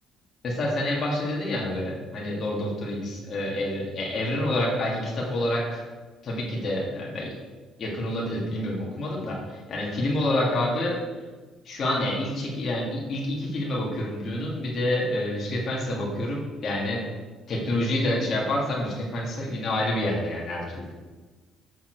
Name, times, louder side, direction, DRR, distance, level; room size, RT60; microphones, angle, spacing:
voice 1, 0.4-5.8 6.2-7.3 7.8-11.0 11.7-17.1 17.5-20.9, left 1 dB, 35° left, -4 dB, 1.8 m, -28 dB
7.3 x 6.3 x 4.5 m, 1.3 s
cardioid pair, 165°, 0 cm